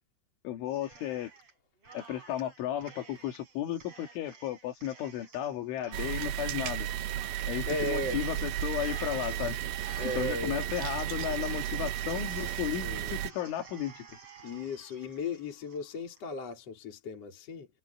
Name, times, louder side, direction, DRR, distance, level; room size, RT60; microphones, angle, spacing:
voice 1, 0.4-1.3 1.9-6.9 7.5-9.6 10.0-14.1, left 11 dB, 75° left, 4.8 m, -34 dB
Cheering, 0.7-1.5 1.8-16.2, right 4 dB, 30° right, 7.1 m, -51 dB
sound 1, 5.9-13.3, right 12 dB, 75° right, 2.2 m, -34 dB
voice 2, 7.7-8.2 10.0-10.6 12.3-13.2 14.4-17.7, left 2 dB, 35° left, 4.8 m, -36 dB
omnidirectional pair, 5.7 m